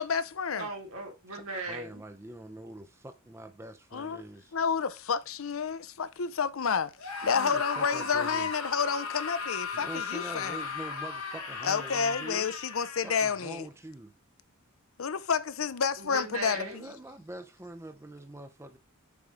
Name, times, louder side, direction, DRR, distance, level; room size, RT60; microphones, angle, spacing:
voice 1, 0.0-0.7 3.9-4.2 4.5-6.9 7.2-10.6 11.6-13.7 15.0-16.8, left 6 dB, 70° left, 0.6 m, -30 dB
voice 2, 0.5-2.0 16.0-16.9, right 2 dB, 80° right, 3.0 m, -37 dB
voice 3, 1.7-4.5 7.3-8.5 9.7-12.5 13.0-14.1 16.5-18.8, right 1 dB, 10° right, 0.6 m, -44 dB
Screaming, 7.0-13.5, left 4 dB, 90° left, 2.4 m, -36 dB
7.0 x 4.7 x 3.8 m
head